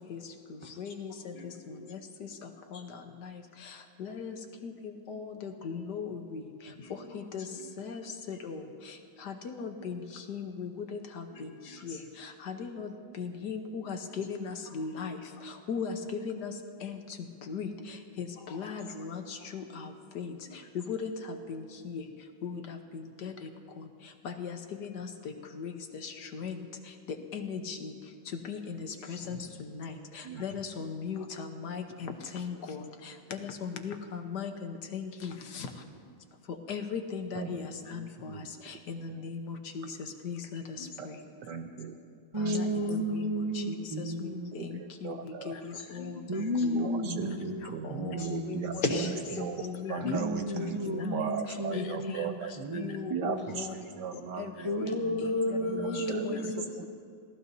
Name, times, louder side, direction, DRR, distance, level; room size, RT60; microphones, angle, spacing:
voice 1, 0.8-1.1 1.9-2.0 2.7-2.8 4.0-4.4 4.6-4.7 5.1-6.4 7.1-7.5 7.8-8.0 8.3-8.6 9.3-10.0 10.3-11.0 11.8-12.0 12.5-12.9 13.2-15.2 15.7-16.0 16.2-16.5 16.8-17.0 17.5-17.7 18.2-18.3 18.5-19.2 19.5-19.9 20.1-20.3 20.9-21.1 21.5-22.0 22.4-23.3 24.2-25.1 25.6-25.7 26.0-26.6 27.3-27.9 28.5-28.8 29.1-29.4 29.8-29.9 30.4-32.8 33.3-35.7 36.7-38.3 38.7-39.9 40.2-40.6 42.4-43.3 43.7-43.8 44.2-45.2 45.5-45.6 45.9-46.1 46.6-47.1 48.0-48.8 49.4-50.2 50.5-50.6 51.0-51.2 51.7-52.3 52.7-53.7 54.4-54.5 54.8-56.4, left 6 dB, 60° left, 5 dB, 1.5 m, -38 dB
voice 2, 1.3-1.8 2.7-2.8 6.7-6.9 7.4-7.6 7.9-8.0 11.3-12.0 14.0-14.2 14.4-15.0 15.4-15.5 18.4-18.7 20.4-20.5 29.0-29.5 30.3-30.6 31.1-31.3 36.0-36.1 40.9-41.5 42.7-42.9 45.6-46.7 48.2-48.4 48.8-48.9 49.2-49.4 53.8-54.0 55.9-56.7, left 3 dB, 80° left, 0 dB, 2.7 m, -41 dB
voice 3, 37.3-38.7 39.1-39.2 39.5-39.6 41.0-41.1 41.4-42.8 44.5-45.8 46.7-48.8 49.3-52.6 53.1-56.9, right 7 dB, 70° right, 7 dB, 1.2 m, -39 dB
voice 4, 42.3-44.7 46.3-48.8 50.0-53.3 54.6-56.7, equal, 50° right, 0 dB, 0.3 m, -33 dB
28.0 x 17.5 x 2.7 m, 2.3 s
omnidirectional pair, 2.3 m